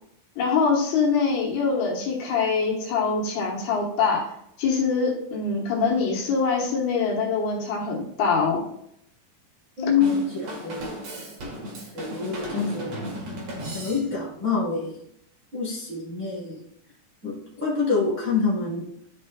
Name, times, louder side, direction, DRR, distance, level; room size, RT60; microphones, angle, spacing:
voice 1, 0.4-4.2 4.6-8.6, left 5 dB, 70° left, -2 dB, 3.0 m, -24 dB
voice 2, 9.8-10.9 11.9-13.1 13.7-15.0 15.5-16.6 17.2-18.9, left 5 dB, 20° right, -9 dB, 2.0 m, -26 dB
Drum kit / Drum, 10.0-14.4, right 1 dB, 55° right, 2.1 m, -35 dB
14.0 x 5.2 x 2.3 m, 0.76 s
omnidirectional pair, 4.8 m